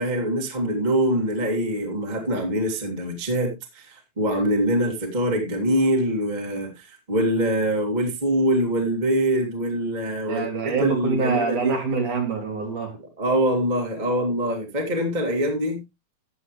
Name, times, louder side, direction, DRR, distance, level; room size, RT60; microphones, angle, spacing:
voice 1, 0.0-11.7 13.2-15.8, equal, 15° right, 1.6 m, -24 dB
voice 2, 10.3-12.9, right 4 dB, 55° right, 4.0 m, -25 dB
13.5 x 8.4 x 3.2 m
omnidirectional pair, 4.3 m